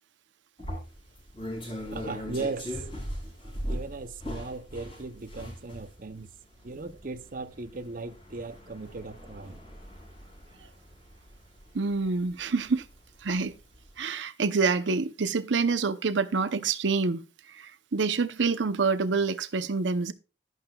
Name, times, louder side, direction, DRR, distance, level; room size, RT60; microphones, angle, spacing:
sound 1, 0.6-13.2 13.6-13.9, equal, 30° left, 5.5 m, -39 dB
voice 1, 1.9-2.8 3.7-6.3 6.6-9.6, right 3 dB, 50° right, 0.7 m, -37 dB
voice 2, 11.7-12.9 13.2-13.5 14.0-17.2 17.5-20.1, right 4 dB, 85° right, 0.7 m, -27 dB
11.5 x 11.0 x 2.3 m
head